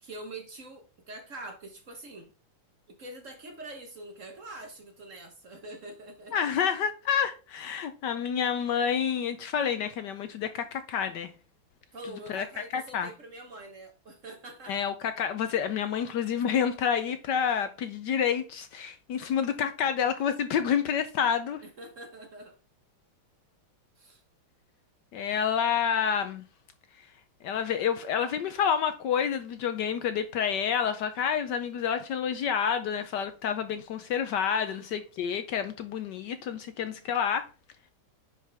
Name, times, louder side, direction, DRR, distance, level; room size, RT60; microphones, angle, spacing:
voice 1, 0.0-2.3 2.9-6.4 11.9-14.8 19.4-19.7 21.6-22.6 24.0-24.2 34.5-34.9, right 2 dB, 45° right, 1.2 m, -44 dB
voice 2, 6.3-11.3 12.3-12.4 12.7-13.1 14.7-21.6 25.1-26.4 27.4-37.5, left 8 dB, 70° left, 1.1 m, -28 dB
9.8 x 5.0 x 3.4 m
omnidirectional pair, 2.2 m